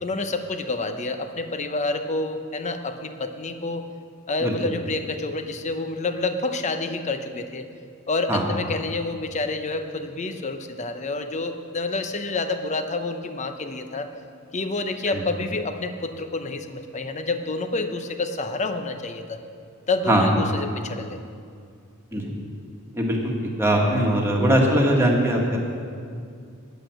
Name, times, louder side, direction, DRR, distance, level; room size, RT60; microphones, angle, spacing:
voice 1, 0.0-3.8 4.3-7.7 8.1-14.1 14.5-19.4 19.9-21.2, left 3 dB, 30° left, 7 dB, 0.7 m, -28 dB
voice 2, 22.9-23.3 23.6-25.6, equal, 10° right, -1 dB, 1.6 m, -21 dB
10.0 x 8.3 x 7.7 m, 2.3 s
head